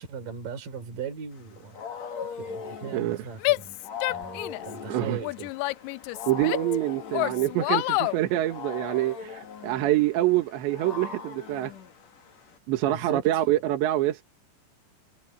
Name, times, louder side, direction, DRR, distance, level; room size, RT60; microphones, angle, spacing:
voice 1, 0.0-1.8 2.3-3.8 4.1-5.5 12.9-13.4, right 6 dB, 50° right, 5.0 m, -38 dB
Wild animals, 1.4-12.6, left 7 dB, 50° left, 2.6 m, -40 dB
Female speech woman speaking / Yell, 3.4-4.7 5.2-6.8 7.1-8.2, left 20 dB, 85° left, 2.4 m, -28 dB
voice 2, 6.3-11.7 12.7-14.2, right 15 dB, 80° right, 3.8 m, -26 dB
omnidirectional pair, 5.1 m